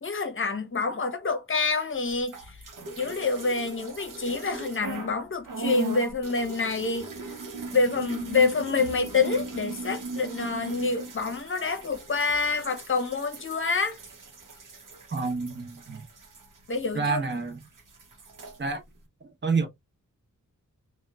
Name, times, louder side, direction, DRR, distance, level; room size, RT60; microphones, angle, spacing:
voice 1, 0.0-2.5 3.0-7.1 7.7-14.0 16.7-17.2, left 4 dB, 40° left, 0.7 m, -27 dB
sound 1, 2.2-5.1 5.4-17.3 17.6-18.6, right 3 dB, 85° right, 0.8 m, -38 dB
voice 2, 15.1-16.0 16.9-17.6 18.6-18.8 19.4-19.7, right 4 dB, 35° right, 0.8 m, -28 dB
2.8 x 2.2 x 2.2 m
wide cardioid pair, 80°, 31 cm